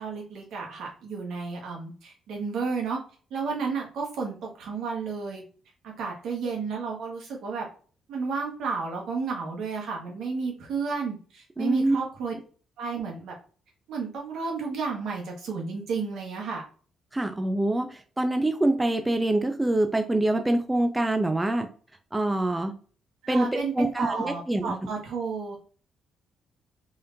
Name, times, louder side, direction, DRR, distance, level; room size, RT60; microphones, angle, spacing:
voice 1, 0.0-3.0 3.3-5.4 5.8-7.7 8.1-12.3 12.8-13.3 13.9-16.6 23.2-25.6, right 5 dB, 75° right, 0 dB, 1.5 m, -32 dB
voice 2, 11.6-12.0 17.1-21.7 22.1-22.7 23.3-24.7, right 1 dB, 15° right, 6 dB, 0.5 m, -25 dB
3.7 x 3.4 x 2.7 m, 0.40 s
cardioid pair, 90°, 0 cm